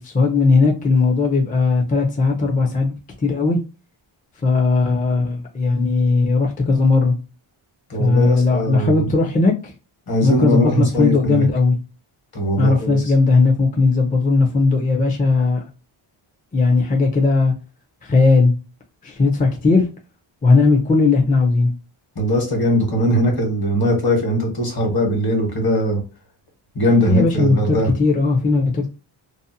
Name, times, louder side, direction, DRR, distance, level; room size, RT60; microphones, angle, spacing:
voice 1, 0.0-3.0 3.2-3.6 4.4-7.1 8.0-9.7 10.2-11.8 12.6-15.6 16.5-17.5 18.0-18.5 19.0-19.9 20.4-21.7 27.1-28.9, left 3 dB, 20° left, 0.4 m, -17 dB
voice 2, 7.9-9.1 10.1-11.5 12.3-13.0 22.2-26.0 26.7-27.9, equal, 50° left, 1.1 m, -20 dB
2.6 x 2.0 x 2.6 m
cardioid pair, 95°, 49 cm